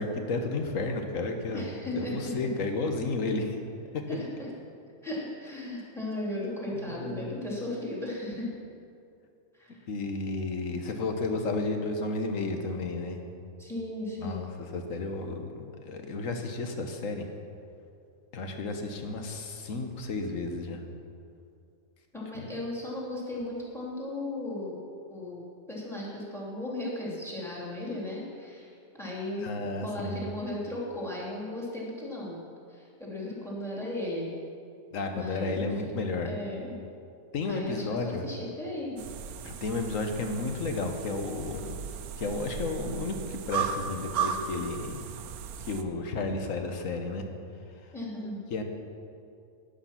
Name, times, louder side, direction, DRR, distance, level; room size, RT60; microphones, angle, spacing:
voice 1, 0.0-1.6 1.9-3.6 6.8-7.4 9.9-13.2 14.2-14.5 14.7-17.2 18.3-20.8 22.3-22.5 29.4-30.3 34.9-36.3 37.3-38.2 39.4-41.8 42.2-45.0 45.6-47.2 48.5-48.6, left 3 dB, 65° left, 4 dB, 1.5 m, -32 dB
voice 2, 1.5-2.5 4.1-4.5 5.0-8.5 9.5-9.8 13.6-14.5 22.1-24.8 25.1-29.5 29.8-32.4 32.7-34.3 35.1-35.7 36.0-36.8 37.5-39.0 47.9-48.4, left 1 dB, ahead, -4 dB, 3.0 m, -36 dB
sound 1, 39.0-45.8, right 7 dB, 90° right, 1.2 m, -36 dB
12.0 x 10.0 x 5.8 m, 2.4 s
omnidirectional pair, 1.5 m